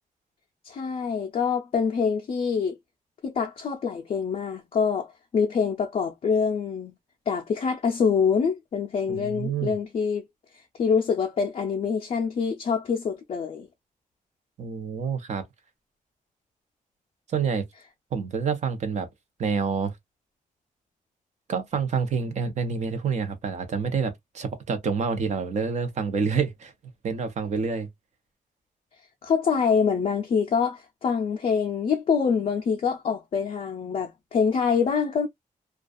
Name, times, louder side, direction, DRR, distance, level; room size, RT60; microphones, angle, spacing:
voice 1, 0.6-2.7 3.2-6.9 7.3-10.2 10.5-13.7 29.2-35.3, left 6 dB, 45° left, 0.4 m, -25 dB
voice 2, 9.1-9.7 14.6-15.4 17.3-17.7 18.1-19.1 19.4-19.9 21.5-26.7 27.0-27.9, right 5 dB, 55° right, 0.7 m, -27 dB
2.3 x 2.3 x 2.4 m
wide cardioid pair, 165°, 14 cm